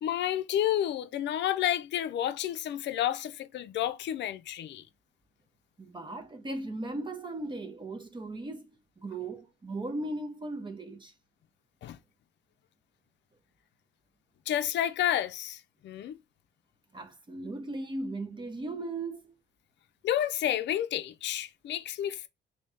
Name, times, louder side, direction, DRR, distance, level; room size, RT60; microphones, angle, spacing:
voice 1, 0.0-4.8 11.8-12.0 14.5-16.2 20.0-22.3, left 11 dB, 65° left, 0.5 m, -30 dB
voice 2, 5.8-8.7 9.0-11.1 16.9-19.3, right 2 dB, 25° right, 0.7 m, -37 dB
3.1 x 2.7 x 3.4 m
cardioid pair, 90°, 20 cm